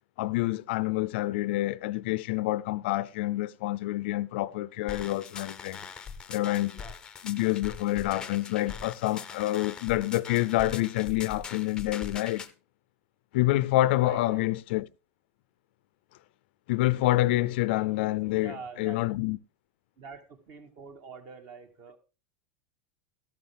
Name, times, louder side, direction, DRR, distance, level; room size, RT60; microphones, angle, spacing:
voice 1, 0.2-5.9 6.3-6.8 7.2-12.4 13.3-14.9 16.7-19.4, left 17 dB, 65° left, 0.5 m, -27 dB
sound 1, 4.9-12.5, left 6 dB, 10° left, 0.7 m, -42 dB
voice 2, 14.0-14.4 18.4-19.1 20.0-22.0, right 5 dB, 40° right, 2.1 m, -45 dB
13.5 x 12.0 x 3.5 m
supercardioid pair, 160°, 6 cm